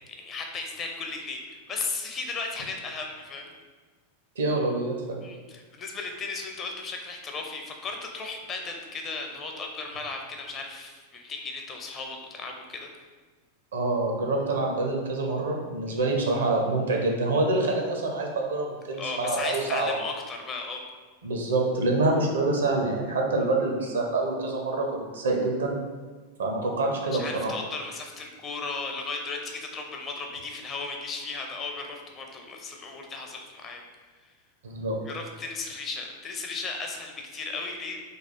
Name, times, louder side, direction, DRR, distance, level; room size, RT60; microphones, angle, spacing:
voice 1, 0.2-3.5 5.2-12.9 19.0-20.8 27.1-33.8 35.1-38.0, left 4 dB, 25° left, 2 dB, 0.5 m, -35 dB
voice 2, 4.4-5.2 13.7-20.0 21.2-25.7 26.4-27.6 34.6-35.0, right 2 dB, 65° right, 1 dB, 0.6 m, -26 dB
3.3 x 2.3 x 4.3 m, 1.4 s
figure-of-eight pair, 90°, 0 cm